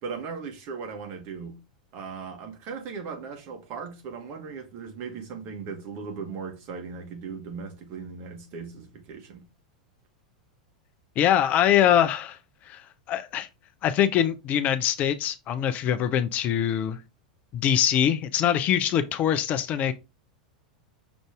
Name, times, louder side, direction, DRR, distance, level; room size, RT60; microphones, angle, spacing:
voice 1, 0.0-1.6 1.9-9.4, right 5 dB, 45° right, 1.6 m, -38 dB
voice 2, 11.2-12.4 12.7-12.8 13.1-13.5 13.8-17.0 17.5-19.9, left 10 dB, 40° left, 0.5 m, -23 dB
6.0 x 2.6 x 3.4 m
figure-of-eight pair, 90°, 4 cm